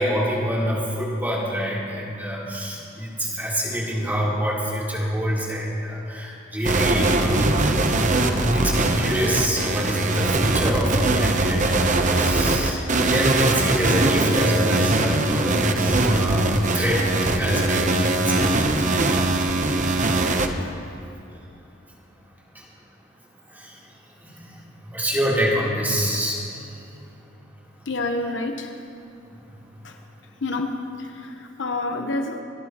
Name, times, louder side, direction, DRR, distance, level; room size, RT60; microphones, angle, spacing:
voice 1, 0.0-7.6 8.4-12.8 13.1-17.1 17.3-18.9 22.5-22.6 23.5-23.8 24.2-26.4 26.7-26.9, equal, 10° right, -6 dB, 3.5 m, -26 dB
sound 1, 6.6-20.5, right 2 dB, 40° right, 0.9 m, -21 dB
voice 2, 27.9-28.7 29.8-30.0 30.4-32.4, left 2 dB, 70° left, 4 dB, 1.1 m, -28 dB
28.5 x 13.0 x 3.1 m, 2.6 s
head